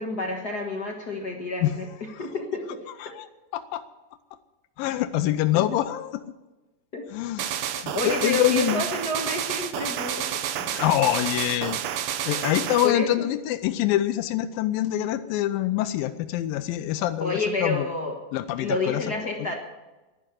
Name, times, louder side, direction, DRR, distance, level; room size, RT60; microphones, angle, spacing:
voice 1, 0.0-1.9 2.2-2.6 5.5-5.6 6.9-7.0 7.9-10.3 12.8-13.3 17.2-18.2 18.6-19.5, left 2 dB, 50° left, 1 dB, 1.2 m, -29 dB
voice 2, 4.8-6.2 7.1-8.8 10.6-11.8 12.3-17.9 18.3-19.2, left 13 dB, 90° left, 10 dB, 2.4 m, -25 dB
sound 1, 7.4-12.9, right 10 dB, 80° right, 1.5 m, -30 dB
11.0 x 11.0 x 9.2 m, 1.1 s
omnidirectional pair, 4.0 m